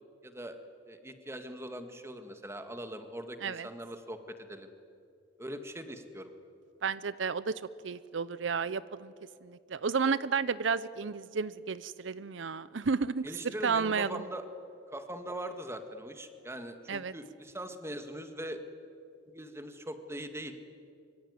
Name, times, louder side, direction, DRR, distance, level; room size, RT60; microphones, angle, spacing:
voice 1, 0.2-0.6 0.9-4.7 5.4-6.3 13.2-14.5 14.9-18.6 19.3-20.6, right 1 dB, 15° right, 7 dB, 1.9 m, -41 dB
voice 2, 6.8-9.1 9.4-13.2 13.6-14.2 16.9-17.1, right 5 dB, 80° right, 17 dB, 0.6 m, -32 dB
25.0 x 24.0 x 9.6 m, 2.5 s
head